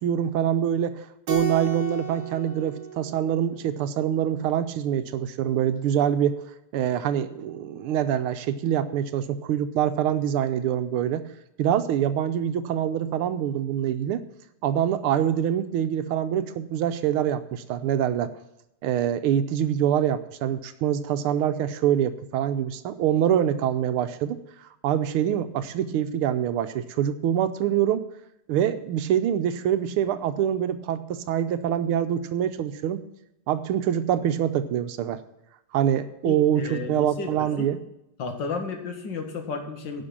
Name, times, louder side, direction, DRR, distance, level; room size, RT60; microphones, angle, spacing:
voice 1, 0.0-6.4 6.7-11.3 11.6-14.2 14.6-18.3 18.8-24.4 24.8-28.0 28.5-33.0 33.5-35.2 35.7-37.8, right 10 dB, 85° right, 10 dB, 1.6 m, -25 dB
Keyboard (musical), 1.3-3.9, right 5 dB, 50° right, 1.9 m, -34 dB
voice 2, 36.3-37.3 37.6-37.7 38.2-40.1, left 4 dB, 55° left, 4 dB, 2.4 m, -33 dB
11.0 x 6.0 x 8.5 m, 0.84 s
omnidirectional pair, 2.4 m